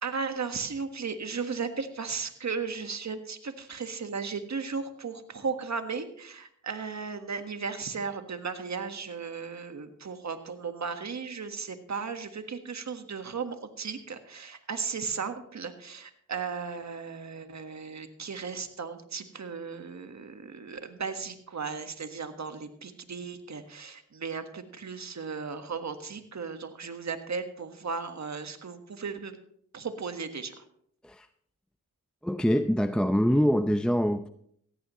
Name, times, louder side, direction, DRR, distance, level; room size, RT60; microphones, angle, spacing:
voice 1, 0.0-29.4 29.7-30.6, right 5 dB, 55° right, 8 dB, 1.6 m, -36 dB
voice 2, 32.2-34.3, equal, 5° left, 9 dB, 0.6 m, -24 dB
16.5 x 14.5 x 3.1 m, 0.66 s
cardioid pair, 55°, 32 cm